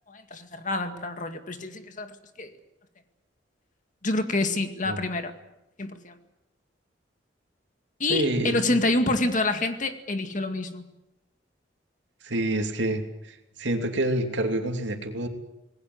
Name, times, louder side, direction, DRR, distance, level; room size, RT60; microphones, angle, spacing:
voice 1, 0.1-2.5 4.0-5.3 5.8-6.1 8.0-10.8, left 2 dB, 45° left, 7 dB, 2.0 m, -27 dB
voice 2, 8.1-8.8 12.2-13.0 13.6-15.3, right 1 dB, 70° right, 4 dB, 3.0 m, -27 dB
26.5 x 19.5 x 8.0 m, 0.92 s
head